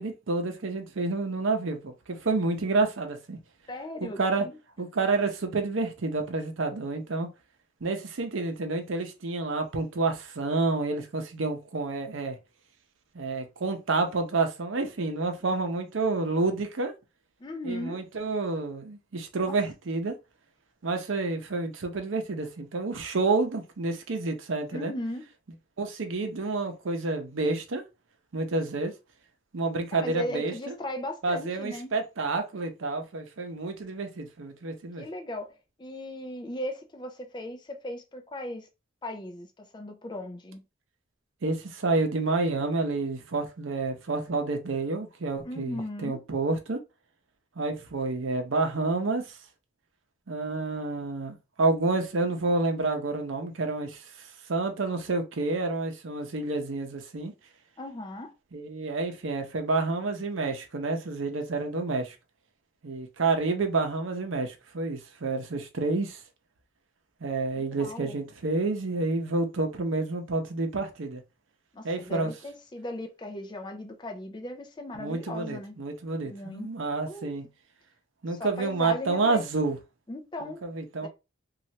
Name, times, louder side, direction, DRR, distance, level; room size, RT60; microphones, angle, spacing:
voice 1, 0.0-3.4 4.0-4.5 4.8-7.3 7.8-12.4 13.1-16.9 17.6-20.1 20.8-24.9 25.8-27.8 28.3-28.9 29.5-30.7 31.2-35.1 41.4-46.8 47.6-49.4 50.3-54.0 54.5-57.3 58.5-62.1 62.8-66.2 67.2-71.2 71.8-72.3 75.0-77.4 78.2-79.8 80.4-81.1, right 3 dB, 80° right, 0.7 m, -29 dB
voice 2, 3.7-4.6 17.4-18.0 19.5-19.6 24.7-25.2 29.9-31.9 35.0-38.7 39.0-40.6 45.4-46.2 57.8-58.3 67.6-68.2 71.7-75.7 76.2-76.7 77.0-77.3 78.3-79.4 80.1-80.6 81.0-81.1, left 1 dB, 20° left, 0.4 m, -37 dB
3.1 x 2.4 x 2.7 m
head